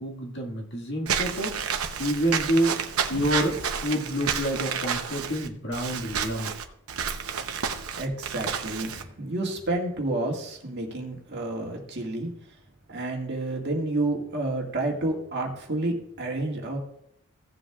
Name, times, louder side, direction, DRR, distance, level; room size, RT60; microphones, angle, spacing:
voice 1, 0.0-1.6 2.0-2.7 3.1-6.5, equal, 50° left, 0 dB, 1.9 m, -28 dB
Walk footsteps / Squeak, 1.1-9.0, right 7 dB, 80° right, 0.9 m, -30 dB
voice 2, 8.0-12.3 12.9-16.8, right 2 dB, 50° right, 0 dB, 1.9 m, -30 dB
16.0 x 7.7 x 2.4 m, 0.74 s
head